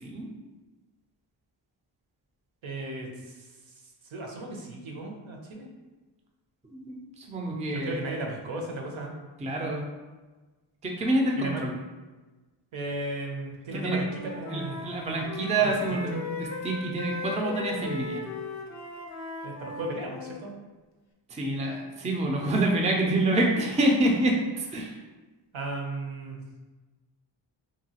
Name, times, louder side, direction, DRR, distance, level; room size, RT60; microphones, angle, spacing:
voice 1, 2.6-3.3 4.1-5.7 7.5-9.1 11.3-11.6 12.7-14.1 14.4-14.8 15.6-15.7 19.4-20.5 25.5-26.4, right 2 dB, 75° right, 1 dB, 0.7 m, -35 dB
voice 2, 6.6-8.0 9.4-9.9 10.8-11.7 13.7-14.1 14.5-18.2 21.3-25.0, right 2 dB, 15° right, 0 dB, 0.4 m, -27 dB
Wind instrument woodwind instrument, 13.7-20.4, left 3 dB, 40° left, 0.5 m, -37 dB
2.9 x 2.3 x 2.8 m, 1.2 s
wide cardioid pair, 90°, 47 cm